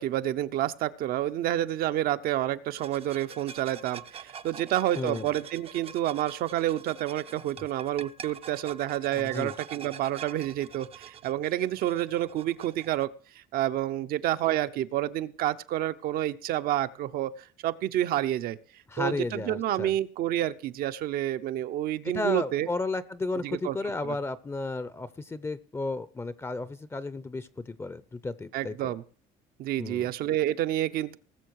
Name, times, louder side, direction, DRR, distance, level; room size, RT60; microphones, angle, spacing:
voice 1, 0.0-13.1 13.4-22.7 23.4-23.8 24.0-24.2 28.5-29.0 29.6-31.2, right 13 dB, 65° right, 12 dB, 0.8 m, -29 dB
sound 1, 2.8-13.1, right 7 dB, 35° right, 0.6 m, -46 dB
voice 2, 5.0-5.3 9.1-9.5 18.9-19.9 22.1-28.9 29.8-30.0, left 3 dB, 15° left, 16 dB, 0.6 m, -33 dB
19.5 x 7.1 x 4.7 m, 0.42 s
cardioid pair, 130°, 17 cm